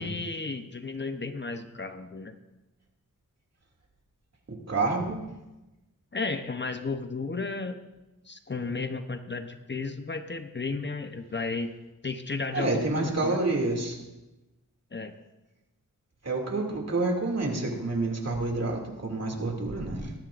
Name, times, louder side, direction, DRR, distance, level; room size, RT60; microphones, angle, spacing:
voice 1, 0.0-2.4 6.1-7.8 8.3-11.7 12.0-13.4 14.9-15.1, left 3 dB, 35° left, 8 dB, 0.8 m, -33 dB
voice 2, 4.5-5.3 12.5-14.0 16.2-20.1, right 2 dB, 50° right, 0 dB, 2.5 m, -28 dB
19.5 x 14.0 x 2.5 m, 1.0 s
wide cardioid pair, 85°, 32 cm